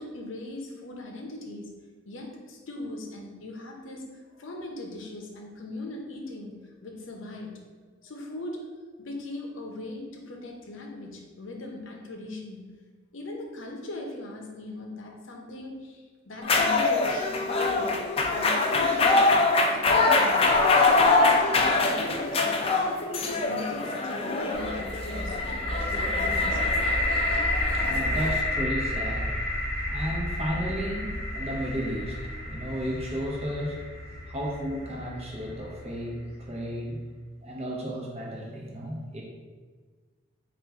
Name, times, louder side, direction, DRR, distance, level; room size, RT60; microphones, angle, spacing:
voice 1, 0.0-1.8 2.0-7.6 8.0-8.7 9.0-12.7 13.1-20.5 20.7-22.4 22.8-26.7, left 2 dB, 70° left, 1 dB, 0.6 m, -39 dB
sound 1, 16.4-28.4, left 3 dB, 30° left, 0.4 m, -24 dB
sound 2, 24.5-36.4, left 1 dB, 10° left, 0.9 m, -30 dB
voice 2, 25.7-26.2 27.0-37.1 37.4-39.2, equal, 35° right, -2 dB, 0.7 m, -34 dB
4.5 x 2.4 x 3.4 m, 1.4 s
head